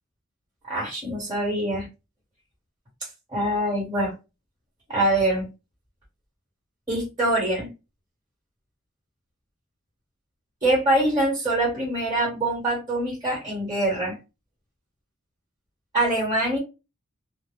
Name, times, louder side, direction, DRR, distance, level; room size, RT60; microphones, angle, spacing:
voice 1, 0.7-1.9 3.3-4.1 4.9-5.5 6.9-7.7 10.6-14.2 15.9-16.6, right 1 dB, 20° right, 1.2 m, -24 dB
2.3 x 2.0 x 3.4 m
head